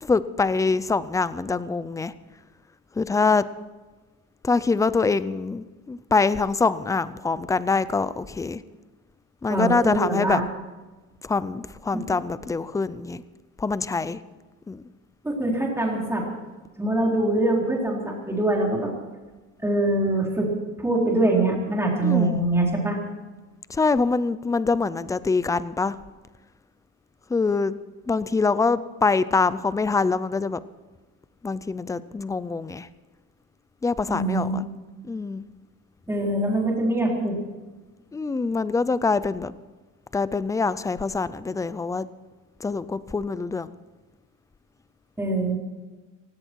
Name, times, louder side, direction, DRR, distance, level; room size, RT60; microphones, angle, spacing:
voice 1, 0.0-2.1 3.0-3.4 4.4-8.6 9.4-10.4 11.2-13.2 13.6-14.2 14.7-14.8 22.0-22.4 23.7-26.0 27.3-27.7 28.1-30.6 31.4-32.9 33.8-34.6 35.1-35.5 38.1-39.5 40.1-42.1 42.6-43.7, left 4 dB, 10° left, 16 dB, 0.4 m, -24 dB
voice 2, 9.5-10.4 15.2-16.2 16.8-18.9 19.6-20.5 20.8-23.0 34.1-34.6 36.1-37.4 45.2-45.6, right 2 dB, 10° right, -2 dB, 4.0 m, -23 dB
17.5 x 17.0 x 4.7 m, 1.3 s
cardioid pair, 155°, 33 cm